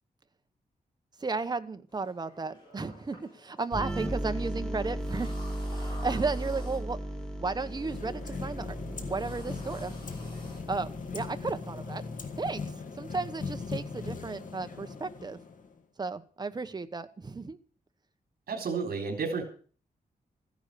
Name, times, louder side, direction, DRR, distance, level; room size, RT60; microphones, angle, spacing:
voice 1, 1.2-5.3 5.7-7.0 7.4-10.0 10.7-12.0 12.4-15.4 16.0-17.6, right 4 dB, 25° right, 9 dB, 1.1 m, -34 dB
sound 1, 1.9-12.1, left 1 dB, 30° left, 7.3 m, -53 dB
sound 2, 3.7-11.3, right 1 dB, 5° left, 2.1 m, -36 dB
sound 3, 7.5-15.8, left 4 dB, 55° left, 2.1 m, -39 dB
voice 2, 18.5-19.4, right 5 dB, 70° right, 1 dB, 3.8 m, -31 dB
15.0 x 10.5 x 6.8 m, 0.42 s
wide cardioid pair, 165°, 16 cm